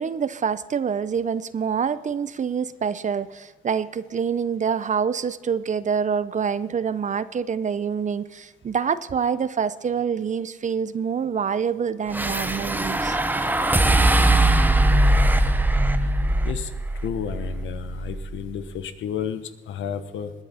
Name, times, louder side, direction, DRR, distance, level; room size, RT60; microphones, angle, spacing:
voice 1, 0.0-13.2, right 7 dB, 40° right, 15 dB, 0.7 m, -26 dB
sound 1, 12.1-18.5, right 1 dB, 10° right, 0.9 m, -21 dB
voice 2, 17.0-20.3, left 8 dB, 75° left, 11 dB, 1.1 m, -31 dB
20.0 x 9.9 x 4.2 m, 1.3 s
cardioid pair, 90°, 20 cm